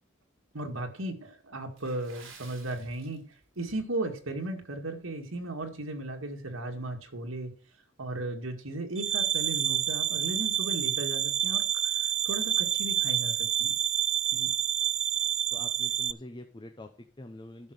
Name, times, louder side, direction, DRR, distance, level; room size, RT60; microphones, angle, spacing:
voice 1, 0.5-3.2 3.6-7.5 8.0-13.7 14.3-14.5, right 2 dB, 90° right, 3 dB, 2.2 m, -36 dB
Water / Splash splatter, 1.8-3.6 3.9-4.2 4.7-4.9 5.4-5.5, right 4 dB, 70° right, 3.8 m, -53 dB
sound 1, 9.0-16.1, right 10 dB, 30° right, 0.4 m, -28 dB
voice 2, 15.5-17.7, left 1 dB, 20° left, 6 dB, 0.8 m, -45 dB
11.0 x 6.0 x 6.6 m, 0.43 s
head